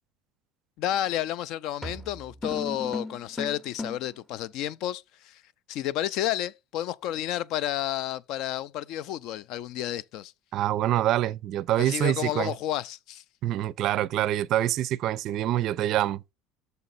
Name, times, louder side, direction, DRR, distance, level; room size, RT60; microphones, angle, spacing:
voice 1, 0.8-5.4 5.7-10.3 11.8-13.2, left 12 dB, 55° left, 0.4 m, -31 dB
sound 1, 1.8-4.2, left 2 dB, ahead, 0.6 m, -36 dB
voice 2, 10.5-12.5 13.4-16.2, right 13 dB, 50° right, 0.4 m, -26 dB
6.6 x 5.1 x 4.0 m
cardioid pair, 155°, 0 cm